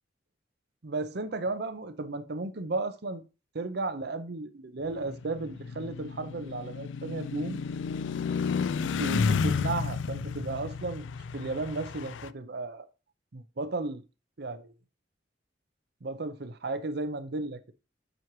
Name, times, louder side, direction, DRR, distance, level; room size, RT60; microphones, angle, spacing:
voice 1, 0.8-3.2 3.5-7.6 8.7-11.1 11.3-12.9 13.3-14.0 14.4-14.7 16.0-17.7, right 3 dB, 60° right, 0.7 m, -34 dB
sound 1, 4.9-12.3, left 5 dB, 80° left, 0.4 m, -32 dB
7.7 x 3.1 x 5.9 m
head